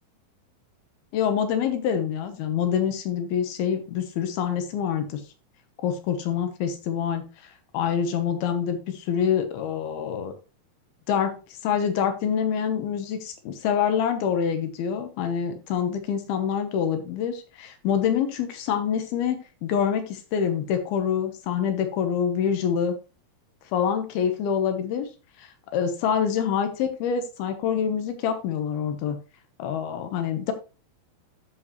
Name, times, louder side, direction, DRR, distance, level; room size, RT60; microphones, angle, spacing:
voice 1, 1.1-5.2 5.8-7.2 7.7-10.3 11.1-11.4 11.6-22.9 23.7-25.1 25.4-29.2 29.6-30.5, left 8 dB, 85° left, 8 dB, 3.0 m, -26 dB
13.0 x 5.0 x 3.1 m, 0.32 s
omnidirectional pair, 4.3 m